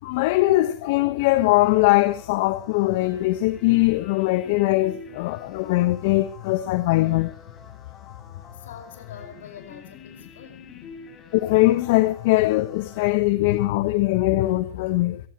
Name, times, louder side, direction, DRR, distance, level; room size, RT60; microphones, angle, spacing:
voice 1, 0.0-7.3 11.3-15.2, left 18 dB, 60° left, 1.2 m, -21 dB
sound 1, 1.2-13.1, left 5 dB, 35° left, 7.1 m, -47 dB
voice 2, 8.5-10.7, left 8 dB, 80° left, 5.1 m, -44 dB
28.5 x 16.0 x 3.0 m
hypercardioid pair, 105°, 0 cm